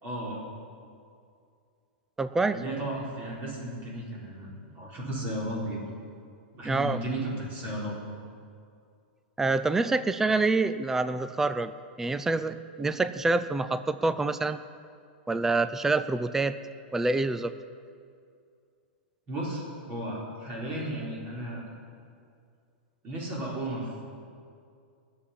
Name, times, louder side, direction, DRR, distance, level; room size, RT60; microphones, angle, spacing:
voice 1, 0.0-0.4 2.5-5.8 6.5-8.0 19.3-21.6 23.0-23.9, right 1 dB, 30° right, -4 dB, 4.5 m, -34 dB
voice 2, 2.2-2.6 6.6-7.0 9.4-14.6 15.3-16.6 16.9-17.5, right 3 dB, 5° right, 12 dB, 0.4 m, -26 dB
17.0 x 7.2 x 10.0 m, 2.4 s
hypercardioid pair, 140°, 6 cm